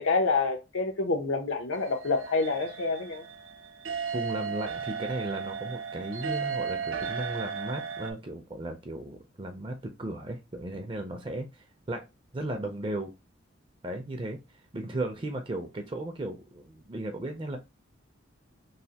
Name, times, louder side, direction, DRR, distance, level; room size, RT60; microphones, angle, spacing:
voice 1, 0.0-3.2, left 3 dB, 85° left, 0.7 m, -27 dB
sound 1, 1.7-8.1, right 6 dB, 85° right, 0.6 m, -35 dB
voice 2, 4.1-12.0 12.3-13.1 13.8-14.4 14.7-17.6, right 1 dB, 25° right, 0.4 m, -35 dB
3.2 x 2.5 x 2.8 m
head